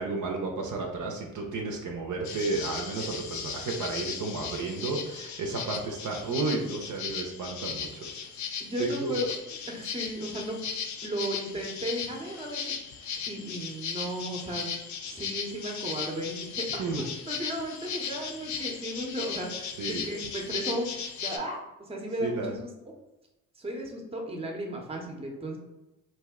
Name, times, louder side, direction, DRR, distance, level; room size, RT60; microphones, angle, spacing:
voice 1, 0.0-8.1 8.8-9.2 16.8-17.0 19.8-20.0 22.2-22.5, right 3 dB, 55° right, 1 dB, 0.6 m, -32 dB
sound 1, 2.2-21.4, left 7 dB, 50° left, 0.5 m, -37 dB
voice 2, 8.6-9.3 9.7-10.6 11.0-14.7 15.1-20.9 21.2-22.7 23.6-25.6, right 1 dB, 15° right, 1 dB, 0.7 m, -35 dB
2.6 x 2.1 x 3.5 m, 0.98 s
supercardioid pair, 60°, 37 cm